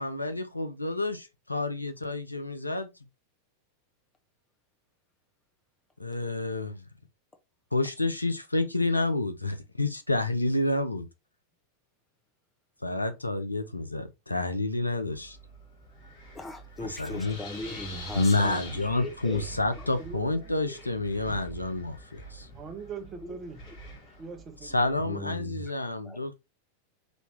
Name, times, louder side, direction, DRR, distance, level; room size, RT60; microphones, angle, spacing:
voice 1, 0.0-2.9 6.0-6.8 7.7-11.1 12.8-15.4 16.8-17.4 18.1-22.5 24.6-26.4, left 2 dB, 85° left, 0.5 m, -29 dB
Wind, 15.0-25.1, equal, 45° left, 2.1 m, -45 dB
voice 2, 16.3-19.5 19.8-19.9 23.2-23.4 25.0-25.7 26.0-26.2, left 1 dB, 15° left, 0.9 m, -39 dB
voice 3, 20.0-20.6 22.5-23.6 24.2-24.8, right 5 dB, 25° right, 0.9 m, -41 dB
4.1 x 2.8 x 3.2 m
figure-of-eight pair, 90°, 0 cm